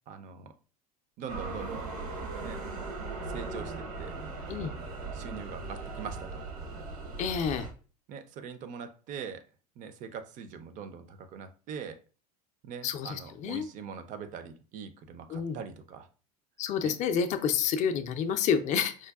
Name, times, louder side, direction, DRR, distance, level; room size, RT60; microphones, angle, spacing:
voice 1, 0.1-0.5 1.2-1.9 2.4-2.6 3.3-6.5 8.1-9.5 9.8-12.0 12.6-16.1 16.8-17.0, right 6 dB, 40° right, 0.5 m, -43 dB
sound 1, 1.3-7.7, right 3 dB, 75° right, 0.9 m, -38 dB
voice 2, 7.2-7.7 12.8-13.7 15.3-15.6 16.6-19.1, left 7 dB, 40° left, 0.4 m, -29 dB
4.8 x 2.2 x 2.3 m
hypercardioid pair, 75°, 20 cm